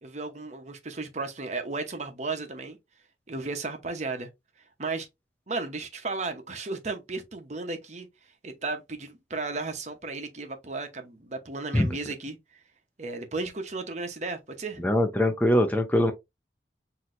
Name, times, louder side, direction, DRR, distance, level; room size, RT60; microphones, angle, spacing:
voice 1, 0.0-2.8 3.3-4.3 4.8-5.1 5.5-8.1 8.4-12.4 13.0-14.8, right 3 dB, 40° right, 0.9 m, -34 dB
voice 2, 14.8-16.1, left 1 dB, 10° left, 0.5 m, -22 dB
6.0 x 2.9 x 2.5 m
head